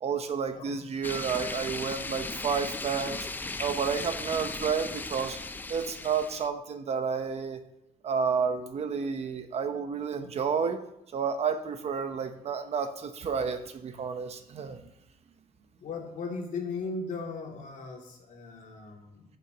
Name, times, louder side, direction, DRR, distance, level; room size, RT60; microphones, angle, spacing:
voice 1, 0.0-3.3 3.6-5.4 5.7-7.6 8.0-10.8 11.1-14.8, right 6 dB, 45° right, 8 dB, 0.8 m, -30 dB
sound 1, 1.0-6.5, left 3 dB, 10° left, 0.4 m, -37 dB
voice 2, 15.8-19.2, left 4 dB, 60° left, 0 dB, 2.5 m, -37 dB
15.0 x 7.1 x 2.9 m, 0.85 s
cardioid pair, 180°, 15 cm